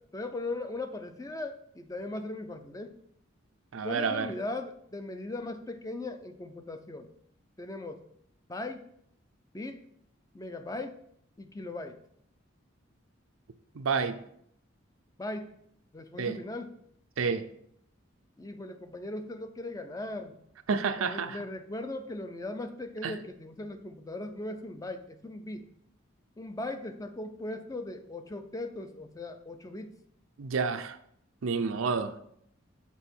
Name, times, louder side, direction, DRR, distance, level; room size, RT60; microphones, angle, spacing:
voice 1, 0.1-3.0 3.8-7.1 7.6-8.0 8.5-8.8 9.5-9.8 10.3-11.0 11.4-12.0 15.2-15.5 15.9-16.8 18.4-20.4 21.0-25.7 26.4-30.0, left 2 dB, 15° left, 8 dB, 0.4 m, -38 dB
voice 2, 3.7-4.3 13.8-14.2 16.2-16.4 17.2-17.5 20.7-21.4 23.0-23.1 30.4-31.0 31.4-32.1, right 5 dB, 80° right, 9 dB, 0.5 m, -29 dB
7.1 x 4.4 x 4.4 m, 0.69 s
head